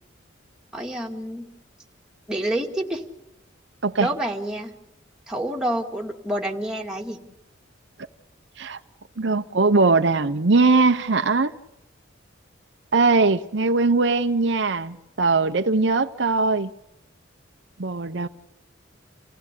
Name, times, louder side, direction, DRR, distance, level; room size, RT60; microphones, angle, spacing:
voice 1, 0.7-1.5 2.3-3.0 4.0-4.7 5.3-7.2, right 1 dB, 5° right, 2.3 m, -28 dB
voice 2, 9.2-11.5 12.9-16.7 17.8-18.3, right 3 dB, 60° right, 0.8 m, -20 dB
28.5 x 16.0 x 8.3 m
head